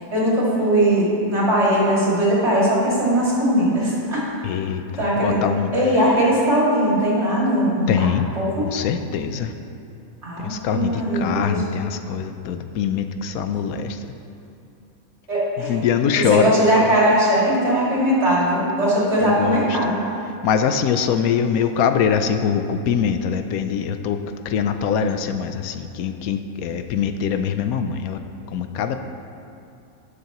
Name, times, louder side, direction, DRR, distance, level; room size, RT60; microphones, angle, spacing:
voice 1, 0.1-4.3 5.0-8.1 8.4-8.7 10.2-11.6 15.3-15.7 16.3-20.0, right 1 dB, 50° right, -7 dB, 2.7 m, -19 dB
voice 2, 4.4-5.7 7.9-8.3 8.6-9.5 10.4-14.1 15.6-16.5 19.2-19.8 20.3-28.2 28.5-29.0, left 7 dB, 85° left, 8 dB, 1.1 m, -23 dB
18.5 x 6.5 x 3.0 m, 2.5 s
omnidirectional pair, 1.5 m